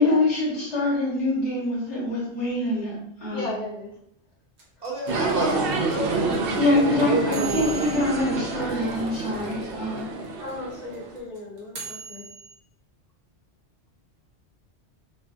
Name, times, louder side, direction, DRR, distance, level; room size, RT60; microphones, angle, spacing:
voice 1, 0.0-3.0 3.2-3.5 6.6-10.1, left 2 dB, 85° left, -5 dB, 1.8 m, -24 dB
voice 2, 3.3-3.9 10.4-12.2, left 2 dB, 40° left, -4 dB, 1.2 m, -35 dB
sound 1, 4.6-9.7 10.0-10.1 10.2-12.6, right 5 dB, 85° right, 1.2 m, -40 dB
voice 3, 4.8-7.5 9.6-10.1, equal, 40° right, -5 dB, 1.2 m, -34 dB
sound 2, 5.1-11.2, right 3 dB, 65° right, 0.8 m, -27 dB
5.3 x 2.4 x 2.6 m, 0.72 s
omnidirectional pair, 1.1 m